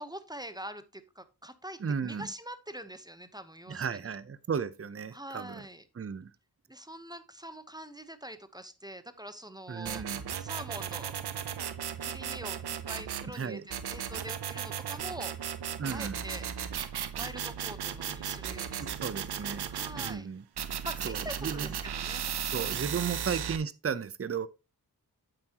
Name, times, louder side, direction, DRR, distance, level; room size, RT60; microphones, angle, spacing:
voice 1, 0.0-4.0 5.1-5.9 6.7-10.0 10.4-11.1 12.0-15.3 15.9-19.2 19.4-20.3 20.8-23.2, right 1 dB, 10° right, 1.0 m, -44 dB
voice 2, 1.8-2.3 3.7-5.6 6.0-6.3 9.7-10.2 13.3-13.6 15.8-16.2 18.8-19.7 19.9-20.4 21.0-21.7 22.5-24.5, right 6 dB, 35° right, 0.7 m, -34 dB
sound 1, 9.9-13.3 13.7-20.2 20.6-23.6, right 8 dB, 85° right, 0.8 m, -36 dB
8.7 x 7.6 x 2.9 m
cardioid pair, 50°, 38 cm